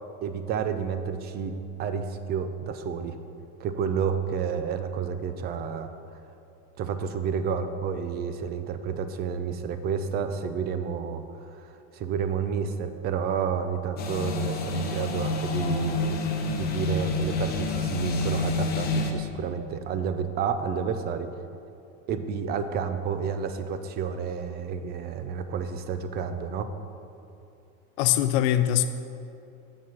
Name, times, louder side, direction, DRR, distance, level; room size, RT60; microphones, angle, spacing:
voice 1, 0.2-3.2 3.6-5.9 6.8-16.2 16.5-21.3 22.1-26.7, right 6 dB, 25° right, 9 dB, 0.4 m, -30 dB
sound 1, 14.0-19.1, left 3 dB, 25° left, 0.8 m, -28 dB
voice 2, 28.0-28.9, left 12 dB, 60° left, 10 dB, 0.5 m, -22 dB
7.6 x 7.1 x 6.0 m, 2.6 s
supercardioid pair, 150°, 38 cm